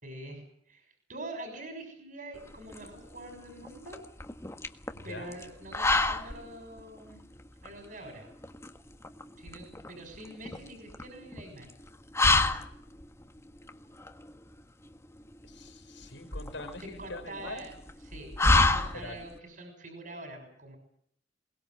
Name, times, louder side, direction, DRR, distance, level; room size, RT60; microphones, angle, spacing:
voice 1, 0.0-4.0 5.0-7.2 7.6-8.3 9.4-11.7 16.8-17.7 18.0-20.8, right 1 dB, 50° right, 4 dB, 6.3 m, -45 dB
sound 1, 2.3-19.4, left 2 dB, 15° left, 1.5 m, -31 dB
voice 2, 4.9-5.3 15.4-17.7 18.9-19.2, left 2 dB, 90° left, 7 dB, 4.9 m, -43 dB
22.5 x 21.0 x 7.9 m, 0.68 s
head